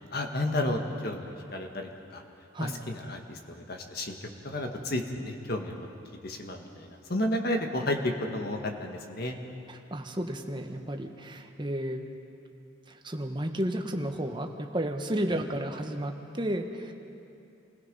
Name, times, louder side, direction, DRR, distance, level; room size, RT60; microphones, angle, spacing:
voice 1, 0.1-2.2 2.6-5.9 6.2-9.4, left 1 dB, 50° left, 3 dB, 1.7 m, -32 dB
voice 2, 9.9-12.0 12.9-16.9, right 1 dB, 25° right, 4 dB, 1.2 m, -32 dB
28.0 x 17.0 x 5.5 m, 2.6 s
head